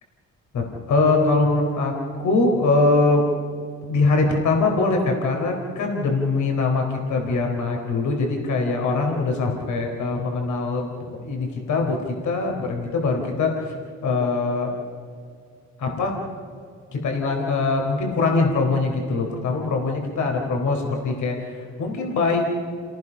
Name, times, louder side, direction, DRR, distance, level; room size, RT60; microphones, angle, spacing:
voice 1, 0.5-3.2 3.9-10.9 11.2-13.8 14.0-14.7 15.8-16.1 16.9-22.5, left 3 dB, 75° left, 1 dB, 3.9 m, -22 dB
28.5 x 18.0 x 5.6 m, 2.3 s
cardioid pair, 90°, 30 cm